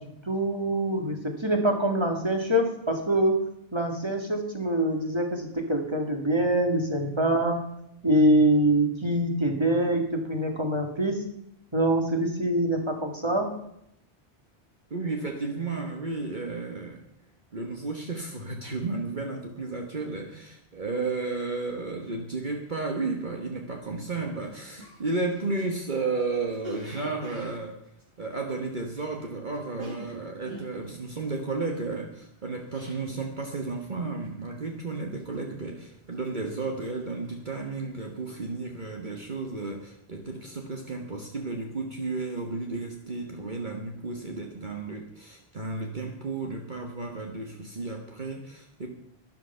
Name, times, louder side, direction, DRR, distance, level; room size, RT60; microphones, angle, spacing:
voice 1, 0.0-3.4 3.7-7.6 8.0-11.2 11.7-13.6, right 1 dB, 25° right, 3 dB, 2.1 m, -25 dB
voice 2, 14.9-17.0 17.5-27.8 28.2-48.9, right 3 dB, 45° right, 2 dB, 1.5 m, -33 dB
Cough, 24.4-24.5 24.8-29.2 29.5-33.3 33.6-34.0 34.2-34.7 35.2-35.8 36.1-37.8 38.1-38.4, right 1 dB, 80° right, 7.7 m, -45 dB
13.0 x 11.0 x 5.6 m, 0.76 s
omnidirectional pair, 1.1 m